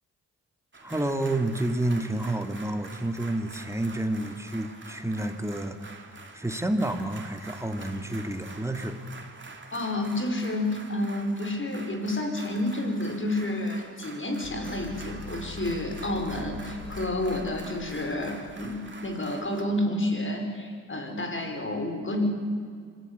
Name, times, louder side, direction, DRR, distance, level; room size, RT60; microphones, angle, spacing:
sound 1, 0.7-19.6, right 3 dB, 35° right, 3.2 m, -46 dB
voice 1, 0.8-6.0 6.3-9.1, right 1 dB, 10° right, 7 dB, 2.5 m, -29 dB
voice 2, 9.7-22.3, left 1 dB, 35° left, 4 dB, 5.5 m, -30 dB
sound 2, 14.4-19.3, left 7 dB, 70° left, 1.4 m, -43 dB
25.0 x 16.5 x 8.4 m, 2.1 s
supercardioid pair, 45°, 33 cm